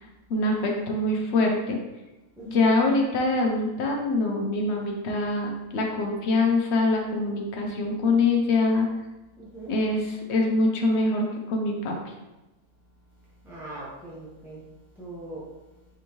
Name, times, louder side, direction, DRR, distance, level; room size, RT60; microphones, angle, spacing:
voice 1, 0.3-1.8 2.5-8.9 9.7-12.1, left 2 dB, 55° left, 1 dB, 0.8 m, -24 dB
voice 2, 9.4-9.8 13.4-14.6 15.0-15.4, right 2 dB, ahead, -9 dB, 0.5 m, -40 dB
4.9 x 3.5 x 3.0 m, 1.0 s
omnidirectional pair, 1.7 m